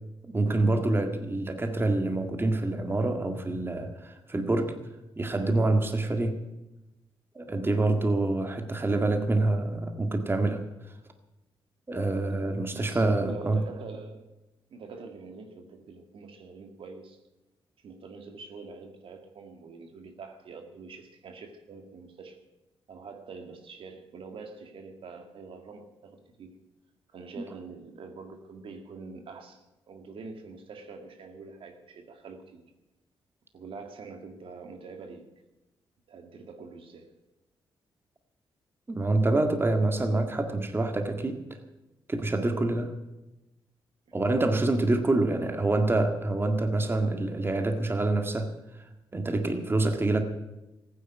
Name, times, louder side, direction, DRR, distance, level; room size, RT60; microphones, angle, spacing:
voice 1, 0.2-4.8 5.2-6.4 7.4-10.6 11.9-13.6 38.9-41.6 42.1-43.0 44.1-50.2, right 2 dB, 25° right, 6 dB, 1.8 m, -26 dB
voice 2, 12.7-14.2 14.7-17.2 17.8-22.4 22.9-26.6 27.1-32.6 33.5-35.3 36.1-37.1 45.1-45.3, right 4 dB, 70° right, 5 dB, 2.1 m, -45 dB
15.0 x 9.7 x 9.0 m, 1.0 s
cardioid pair, 80°, 9 cm